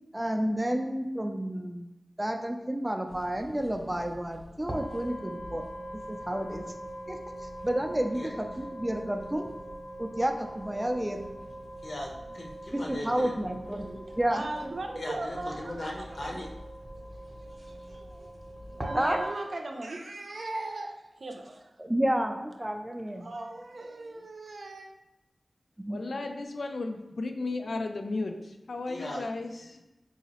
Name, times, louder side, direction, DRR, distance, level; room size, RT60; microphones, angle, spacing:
voice 1, 0.1-1.9 2.2-5.6 6.1-6.7 7.1-7.2 7.6-9.5 10.0-11.3 12.7-13.9 14.2-14.4 18.9-19.2 21.8-23.3 25.8-26.0, right 1 dB, 15° right, 4 dB, 0.4 m, -30 dB
sound 1, 3.1-19.3, right 1 dB, 30° right, 0.8 m, -42 dB
voice 2, 11.8-13.3 15.0-16.5 28.9-29.2, left 1 dB, 65° left, -1 dB, 0.8 m, -38 dB
voice 3, 13.7-16.4 17.7-18.3 18.8-21.7 23.2-24.9, right 2 dB, 65° right, 3 dB, 0.5 m, -39 dB
voice 4, 25.9-29.8, left 3 dB, 80° left, 5 dB, 0.4 m, -34 dB
4.0 x 2.7 x 2.9 m, 1.0 s
wide cardioid pair, 75°, 0 cm